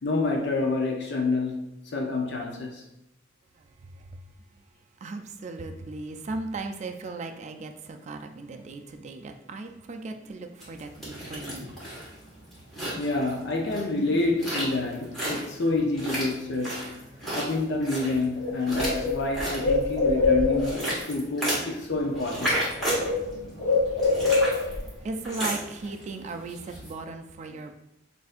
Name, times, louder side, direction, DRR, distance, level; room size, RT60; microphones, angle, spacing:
voice 1, 0.0-2.8 11.4-11.5 12.9-17.0 17.3-20.8 21.1-22.6, left 2 dB, 60° left, 0.6 m, -28 dB
voice 2, 5.0-11.8 24.0-24.3 25.0-27.7, right 3 dB, 35° right, 0.3 m, -37 dB
sound 1, 10.6-26.9, equal, ahead, 1.5 m, -34 dB
Bird, 18.0-18.1 18.4-20.9 21.9-22.2 22.4-24.9, left 3 dB, 40° left, 0.8 m, -25 dB
6.4 x 2.6 x 2.5 m
head